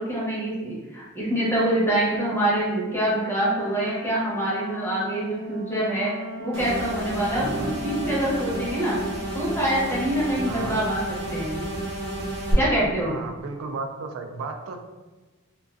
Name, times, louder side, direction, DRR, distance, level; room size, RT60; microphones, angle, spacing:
voice 1, 0.0-6.1 6.4-9.0 9.3-11.6 12.5-13.2, right 1 dB, 10° left, -7 dB, 0.7 m, -25 dB
Wind instrument woodwind instrument, 3.4-9.5, left 3 dB, 55° left, 0.5 m, -37 dB
sound 1, 6.5-12.5, right 1 dB, 55° right, 0.7 m, -31 dB
voice 2, 7.3-7.8 10.5-10.8 13.1-14.8, right 3 dB, 80° right, 4 dB, 0.3 m, -34 dB
2.3 x 2.3 x 2.4 m, 1.2 s
head